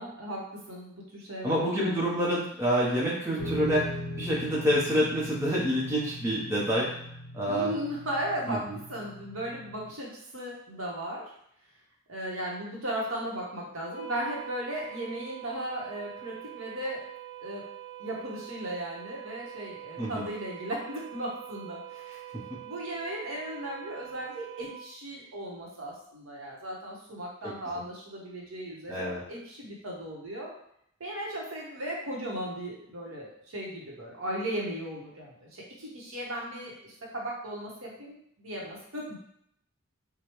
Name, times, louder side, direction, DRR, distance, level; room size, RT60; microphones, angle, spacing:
voice 1, 0.0-2.0 7.5-11.3 12.1-17.0 17.4-17.7 18.0-22.2 22.6-30.5 31.0-39.2, right 1 dB, 80° right, -3 dB, 1.1 m, -36 dB
voice 2, 1.4-3.9 4.2-6.9 7.3-7.7 8.5-8.6 20.0-20.1 28.9-29.2, equal, 10° right, -6 dB, 0.8 m, -27 dB
sound 1, 3.4-9.9, left 1 dB, 80° left, 0.5 m, -40 dB
sound 2, 13.9-24.8, right 14 dB, 65° left, 1.0 m, -44 dB
4.9 x 2.3 x 3.0 m, 0.71 s
head